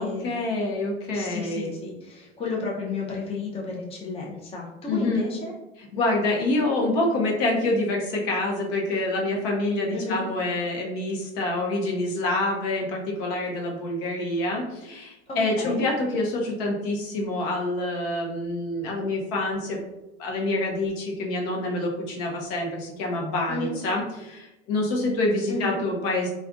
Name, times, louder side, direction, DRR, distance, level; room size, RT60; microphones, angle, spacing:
voice 1, 0.0-1.7 4.9-5.2 5.9-19.8 20.2-26.3, left 2 dB, 60° left, -1 dB, 0.9 m, -26 dB
voice 2, 1.1-5.5 9.9-10.2 15.3-15.9 23.5-23.8 25.5-25.8, left 3 dB, 20° left, -2 dB, 0.6 m, -32 dB
3.3 x 2.4 x 2.4 m, 0.98 s
hypercardioid pair, 95°, 33 cm